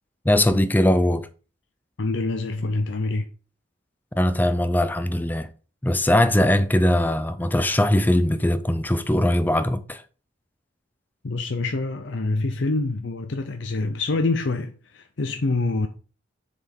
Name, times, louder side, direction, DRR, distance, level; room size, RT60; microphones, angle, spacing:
voice 1, 0.2-1.3 4.1-5.5 5.8-10.0, left 1 dB, 10° left, 0.4 m, -20 dB
voice 2, 2.0-3.2 11.2-15.9, left 3 dB, 65° left, 0.7 m, -26 dB
7.3 x 4.3 x 5.2 m
head